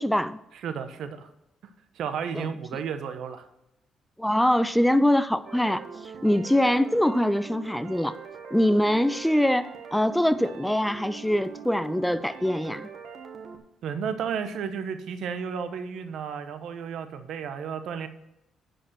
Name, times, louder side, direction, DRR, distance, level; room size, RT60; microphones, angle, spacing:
voice 1, 0.0-0.4 2.3-2.5 4.2-8.1 8.5-12.9, left 1 dB, 5° left, 13 dB, 0.5 m, -23 dB
voice 2, 0.5-1.3 1.9-3.5 13.8-18.1, right 7 dB, 75° right, 9 dB, 1.0 m, -33 dB
sound 1, 5.4-13.6, right 6 dB, 60° right, 1.4 m, -42 dB
10.0 x 5.2 x 5.9 m, 0.85 s
cardioid pair, 90°, 0 cm